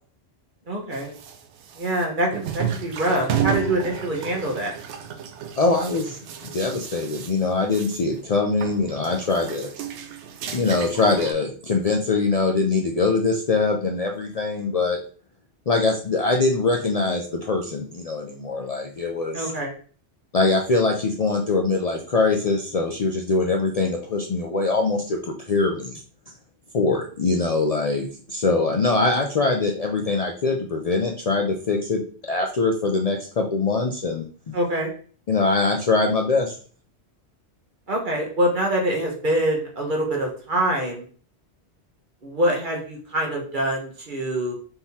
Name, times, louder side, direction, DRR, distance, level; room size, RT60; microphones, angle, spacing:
voice 1, 0.7-1.1 1.8-4.7 19.3-19.7 34.5-34.9 37.9-41.0 42.2-44.5, right 1 dB, 50° right, 0 dB, 1.3 m, -25 dB
sound 1, 0.9-8.2 8.5-11.3, right 8 dB, 90° right, 0.9 m, -32 dB
voice 2, 5.6-6.2 6.5-9.7 10.5-15.0 15.7-19.5 20.3-26.0 26.7-34.2 35.3-36.6, left 3 dB, 50° left, 2 dB, 0.5 m, -23 dB
4.5 x 3.7 x 2.7 m, 0.43 s
omnidirectional pair, 1.1 m